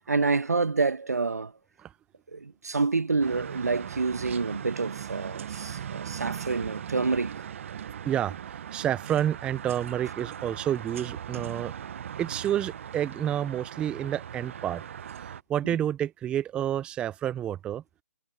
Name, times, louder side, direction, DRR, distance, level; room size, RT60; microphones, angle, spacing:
voice 1, 0.0-1.5 2.3-7.4 15.6-15.8, right 4 dB, 90° right, 1.0 m, -28 dB
sound 1, 3.2-15.4, right 9 dB, 55° right, 0.8 m, -39 dB
voice 2, 8.0-11.7 12.2-14.8 15.2-17.8, right 10 dB, 10° right, 0.4 m, -29 dB
hypercardioid pair, 140°, 8 cm